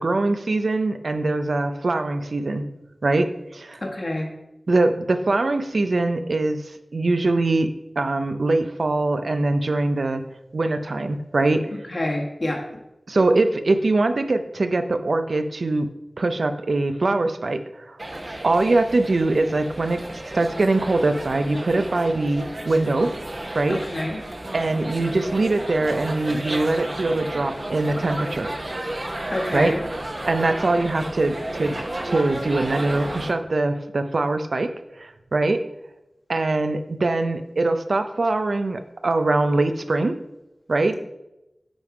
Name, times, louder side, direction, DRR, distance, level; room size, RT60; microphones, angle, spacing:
voice 1, 0.0-2.6 3.0-3.8 4.7-10.2 10.5-11.7 13.1-15.9 16.2-18.0 18.4-20.0 20.3-23.1 23.5-23.8 24.5-28.5 29.5-29.7 30.3-31.8 32.0-35.7 36.3-40.2 40.7-41.0, right 2 dB, 80° right, 9 dB, 0.5 m, -22 dB
voice 2, 3.8-4.3 11.9-12.6 23.7-24.2 29.3-29.8, left 1 dB, 60° left, 0 dB, 1.6 m, -27 dB
sound 1, 18.0-33.3, right 1 dB, 45° right, 0.9 m, -32 dB
8.8 x 3.6 x 4.9 m, 0.94 s
wide cardioid pair, 50°, 0 cm